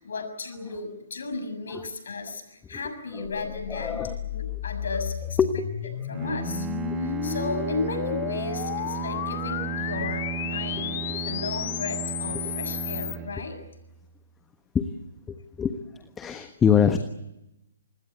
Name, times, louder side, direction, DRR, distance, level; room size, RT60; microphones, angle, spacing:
voice 1, 0.0-5.4 6.1-6.7 6.9-13.6, left 3 dB, 65° left, 7 dB, 6.7 m, -34 dB
voice 2, 3.1-4.2 5.4-5.7 10.8-11.3 12.4-12.6 14.7-14.9 15.3-15.8 16.2-17.0, left 7 dB, 15° left, 8 dB, 1.4 m, -25 dB
sound 1, 3.2-13.2, left 12 dB, 40° left, 1.3 m, -33 dB
Bowed string instrument, 6.1-14.1, right 10 dB, 15° right, 1.3 m, -34 dB
27.5 x 20.5 x 8.2 m, 0.89 s
figure-of-eight pair, 130°, 0 cm